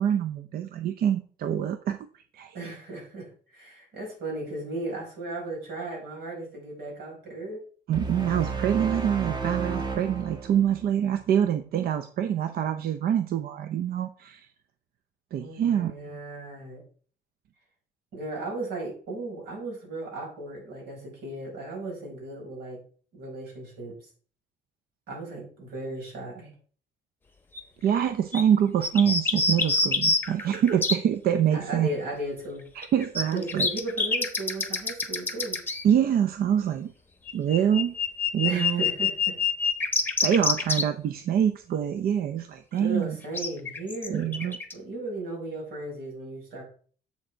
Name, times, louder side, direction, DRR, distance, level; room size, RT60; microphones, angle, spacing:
voice 1, 0.0-2.0 2.3-2.6 7.9-14.5 15.3-16.2 27.8-31.9 32.7-33.7 35.8-36.9 37.3-37.9 38.3-38.8 40.2-43.2 44.1-44.6, right 9 dB, 65° right, 9 dB, 0.5 m, -25 dB
voice 2, 2.5-7.6 15.3-16.8 18.1-22.8 23.1-23.9 25.1-26.5 31.5-32.7 33.3-35.6 38.4-39.3 42.7-44.4 44.7-46.6, right 2 dB, 90° right, -2 dB, 4.8 m, -36 dB
sound 1, 7.9-11.3, right 4 dB, 25° right, 1.2 m, -32 dB
sound 2, 27.5-27.6 28.0-28.1 28.3-28.4 28.8-31.0 32.8-35.8 37.3-40.8 43.3-44.7, left 4 dB, 10° left, 1.0 m, -26 dB
7.2 x 6.4 x 4.4 m, 0.44 s
cardioid pair, 145°, 17 cm